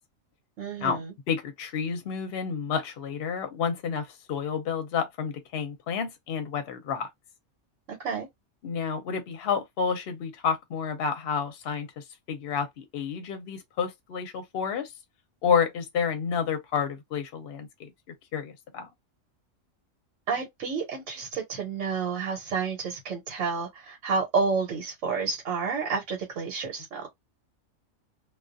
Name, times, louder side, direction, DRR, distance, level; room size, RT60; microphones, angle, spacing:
voice 1, 0.6-1.1 7.9-8.3 20.3-27.0, right 5 dB, 70° right, 1.2 m, -30 dB
voice 2, 1.3-7.1 8.6-14.9 15.4-17.9 18.3-18.9, left 6 dB, 55° left, 0.8 m, -30 dB
2.3 x 2.3 x 2.5 m
omnidirectional pair, 1.4 m